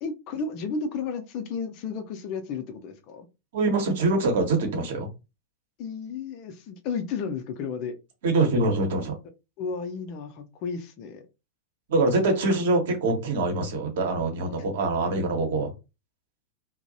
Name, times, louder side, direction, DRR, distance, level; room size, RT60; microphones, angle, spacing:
voice 1, 0.0-3.3 5.8-8.0 9.6-11.3 14.5-14.6, left 5 dB, 40° left, 7 dB, 0.4 m, -33 dB
voice 2, 3.5-5.1 8.2-9.1 11.9-15.7, right 2 dB, 55° right, 3 dB, 0.8 m, -24 dB
2.5 x 2.0 x 2.7 m, 0.27 s
figure-of-eight pair, 90°, 0 cm